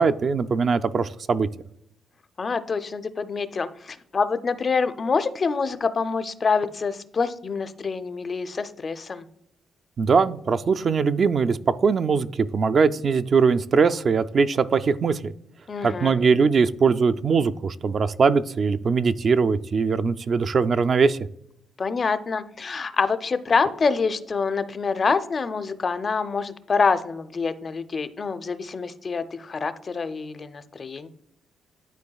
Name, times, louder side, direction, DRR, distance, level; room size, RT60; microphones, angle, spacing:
voice 1, 0.0-1.5 10.0-15.3 15.8-21.2, right 5 dB, 45° right, 11 dB, 0.3 m, -21 dB
voice 2, 2.4-9.3 15.7-16.2 21.8-31.1, left 5 dB, 35° left, 12 dB, 0.4 m, -26 dB
11.5 x 4.5 x 2.3 m, 0.75 s
cardioid pair, 105°, 0 cm